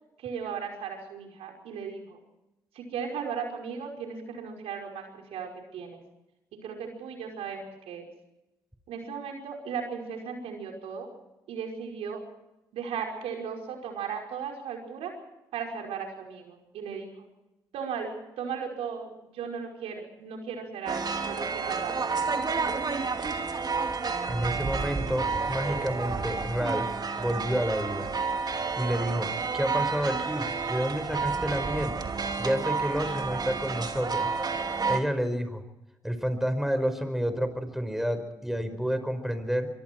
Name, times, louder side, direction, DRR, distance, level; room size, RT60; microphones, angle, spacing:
voice 1, 0.2-2.2 2.7-6.0 6.6-8.1 8.9-11.1 11.5-12.2 12.7-15.1 15.5-17.3 17.7-22.0, right 6 dB, 70° right, 2 dB, 5.3 m, -36 dB
sound 1, 20.9-35.0, right 4 dB, 40° right, 2.8 m, -30 dB
voice 2, 24.3-28.1 28.8-32.0 32.4-34.3 34.8-35.6 36.0-39.7, equal, 5° right, 10 dB, 5.1 m, -30 dB
24.5 x 24.0 x 4.6 m, 0.96 s
hypercardioid pair, 45°, 10 cm